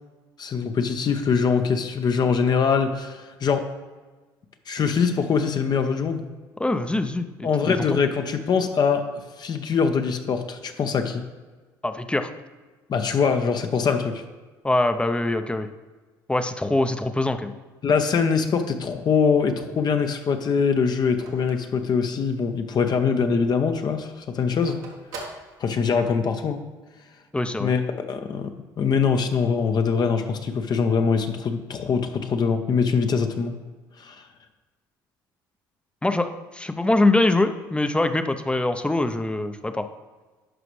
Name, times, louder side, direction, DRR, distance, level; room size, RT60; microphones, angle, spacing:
voice 1, 0.4-3.6 4.7-6.3 7.4-9.0 9.4-11.2 12.9-14.2 17.8-24.8 25.6-26.6 27.6-27.8 28.1-28.5 28.8-33.6 34.0-34.2, left 5 dB, 45° left, 6 dB, 0.7 m, -23 dB
voice 2, 6.6-7.9 11.8-12.3 14.6-15.7 16.3-17.5 27.3-27.7 36.0-39.9, left 2 dB, 10° left, 9 dB, 0.6 m, -23 dB
Telephone, 19.2-22.6 23.0-23.1 23.3-26.2, right 3 dB, 80° right, 1.4 m, -43 dB
11.0 x 5.0 x 3.2 m, 1.3 s
hypercardioid pair, 65°, 10 cm